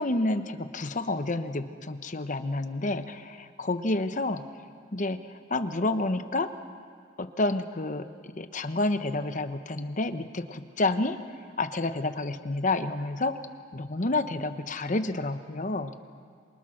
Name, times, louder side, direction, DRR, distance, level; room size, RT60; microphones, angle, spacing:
voice 1, 0.0-4.4 4.9-5.2 5.5-6.5 7.2-11.2 11.6-13.4 13.7-15.9, left 2 dB, 45° left, 10 dB, 1.0 m, -29 dB
27.0 x 23.5 x 6.5 m, 2.2 s
head